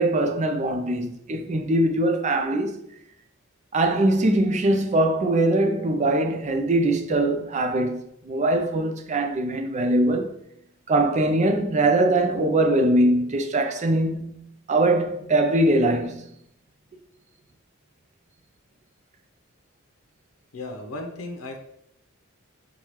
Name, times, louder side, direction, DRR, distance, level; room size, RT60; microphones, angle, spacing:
voice 1, 0.0-2.8 3.7-10.4 10.9-16.3, right 1 dB, 35° right, 0.4 m, -22 dB
voice 2, 20.5-21.6, left 2 dB, 85° left, 0.7 m, -35 dB
5.6 x 2.3 x 3.1 m
head